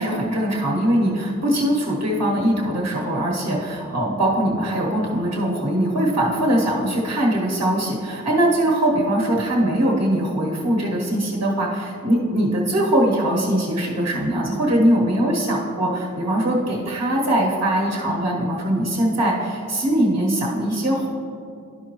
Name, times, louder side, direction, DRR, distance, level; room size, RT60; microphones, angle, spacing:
voice 1, 0.0-21.1, right 1 dB, 55° right, -3 dB, 1.2 m, -21 dB
12.0 x 5.3 x 3.0 m, 2.5 s
wide cardioid pair, 115°, 31 cm